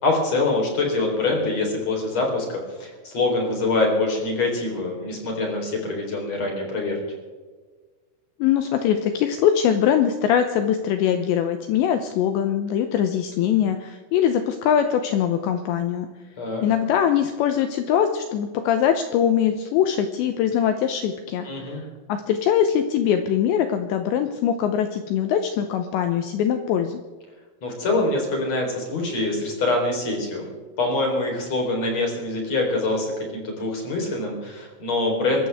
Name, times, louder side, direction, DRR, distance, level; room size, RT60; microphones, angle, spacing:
voice 1, 0.0-7.0 16.4-16.6 21.4-21.8 27.6-30.5 30.8-35.5, left 2 dB, 35° left, 0 dB, 4.4 m, -24 dB
voice 2, 8.4-16.1 16.6-21.8 22.1-27.0, left 9 dB, 80° left, 7 dB, 2.7 m, -22 dB
25.5 x 14.0 x 3.5 m, 1.4 s
omnidirectional pair, 5.9 m